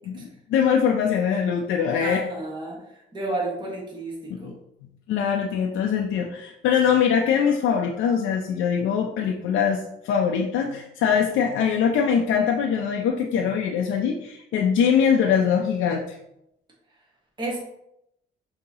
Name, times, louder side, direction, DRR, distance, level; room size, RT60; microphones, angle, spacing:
voice 1, 0.1-2.2 4.4-4.5 5.1-16.2, left 7 dB, 80° left, 1 dB, 0.5 m, -22 dB
voice 2, 2.0-2.8 3.1-4.5 17.4-17.6, right 2 dB, 25° right, -3 dB, 1.2 m, -31 dB
5.3 x 2.8 x 2.8 m, 0.81 s
cardioid pair, 90°, 20 cm